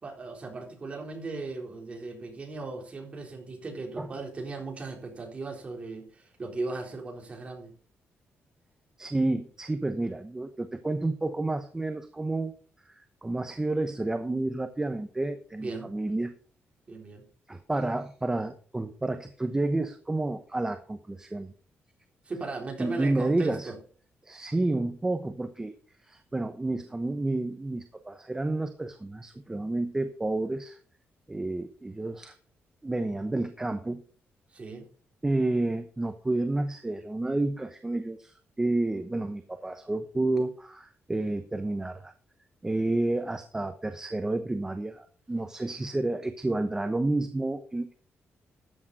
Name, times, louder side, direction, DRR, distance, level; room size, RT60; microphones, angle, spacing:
voice 1, 0.0-7.7 15.6-15.9 16.9-17.3 22.2-23.8 34.5-34.9, right 3 dB, 30° right, 1 dB, 3.9 m, -37 dB
voice 2, 9.0-12.5 12.9-13.0 13.2-16.3 17.5-21.5 22.8-23.7 24.2-25.7 26.0-30.8 31.3-32.3 32.8-34.0 35.2-42.1 42.6-47.9, right 2 dB, 15° right, 8 dB, 0.9 m, -30 dB
13.5 x 8.7 x 4.2 m, 0.42 s
wide cardioid pair, 155°, 4 cm